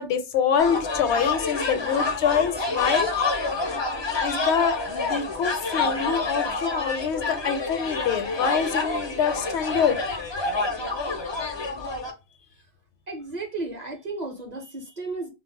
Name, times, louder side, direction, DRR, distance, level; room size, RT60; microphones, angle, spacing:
voice 1, 0.0-3.1 4.2-10.0, left 7 dB, 75° left, 0.8 m, -25 dB
sound 1, 0.6-12.1, left 3 dB, 40° left, 0.4 m, -28 dB
voice 2, 13.1-15.3, right 3 dB, 45° right, 0.7 m, -34 dB
2.3 x 2.0 x 3.7 m
omnidirectional pair, 1.2 m